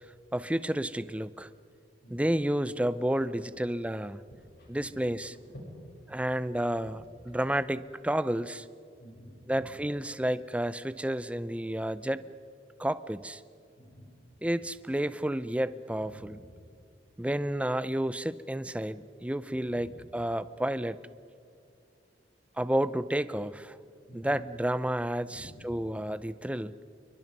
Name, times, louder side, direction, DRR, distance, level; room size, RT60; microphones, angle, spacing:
voice 1, 0.3-1.5 2.1-4.2 4.7-5.3 6.1-7.0 7.3-8.7 9.5-12.2 12.8-13.4 14.4-16.4 17.2-21.0 22.6-23.8 24.1-26.8, right 1 dB, 5° right, 15 dB, 0.5 m, -31 dB
voice 2, 4.4-5.0 5.4-5.9 9.0-9.7 13.8-14.5 16.0-16.5 24.1-24.3 25.2-25.9, equal, 60° left, -2 dB, 7.8 m, -50 dB
28.5 x 23.5 x 5.4 m, 2.5 s
head